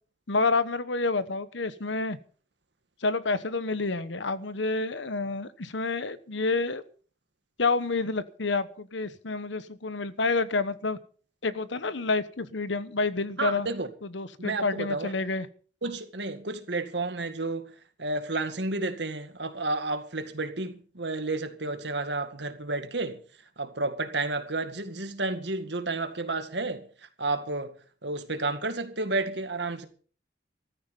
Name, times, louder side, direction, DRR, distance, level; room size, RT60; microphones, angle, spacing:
voice 1, 0.3-2.2 3.0-6.8 7.6-11.0 11.4-13.7 14.0-15.5, left 3 dB, 80° left, 1.1 m, -28 dB
voice 2, 13.4-13.9 14.4-15.1 15.8-17.7 18.0-23.2 23.6-26.9 27.2-27.7 28.0-29.9, right 2 dB, 70° right, 2.0 m, -31 dB
14.5 x 13.5 x 5.4 m
head